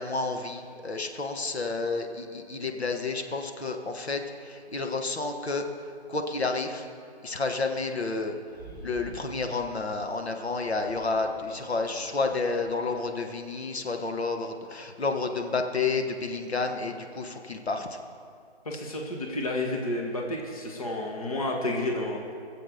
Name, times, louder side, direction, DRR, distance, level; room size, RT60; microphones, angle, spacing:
voice 1, 0.0-5.7 6.1-6.9 7.2-8.4 8.8-18.0, left 3 dB, 70° left, 4 dB, 1.4 m, -30 dB
sound 1, 8.4-9.7 10.5-13.2, right 2 dB, ahead, 4.2 m, -48 dB
voice 2, 18.6-22.3, left 1 dB, 35° left, 0 dB, 1.2 m, -31 dB
22.5 x 7.7 x 5.0 m, 2.3 s
hypercardioid pair, 175°, 33 cm